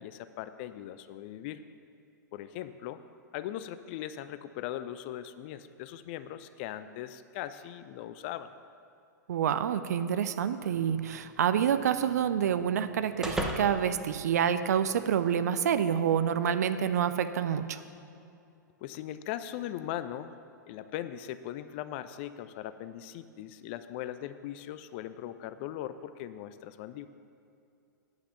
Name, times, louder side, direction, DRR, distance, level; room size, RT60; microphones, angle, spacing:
voice 1, 0.0-1.6 2.3-3.0 3.3-8.5 18.8-20.3 20.7-27.1, left 12 dB, 35° left, 12 dB, 0.3 m, -39 dB
voice 2, 9.3-17.8, right 8 dB, 55° right, 11 dB, 0.5 m, -28 dB
sound 1, 10.6-15.0, right 1 dB, 5° right, 0.8 m, -40 dB
8.9 x 5.6 x 6.8 m, 2.6 s
figure-of-eight pair, 105°, 10 cm